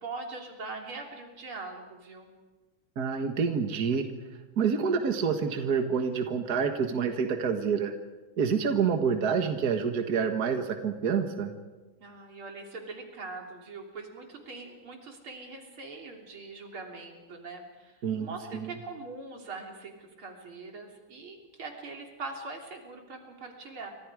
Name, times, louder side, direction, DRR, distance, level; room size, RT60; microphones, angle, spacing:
voice 1, 0.0-2.3 12.0-23.9, right 3 dB, 85° right, 1 dB, 4.1 m, -42 dB
voice 2, 3.0-4.1 4.6-7.9 8.4-11.5 18.0-18.7, right 6 dB, 50° right, 5 dB, 2.0 m, -27 dB
29.0 x 25.0 x 5.0 m, 1.2 s
omnidirectional pair, 2.3 m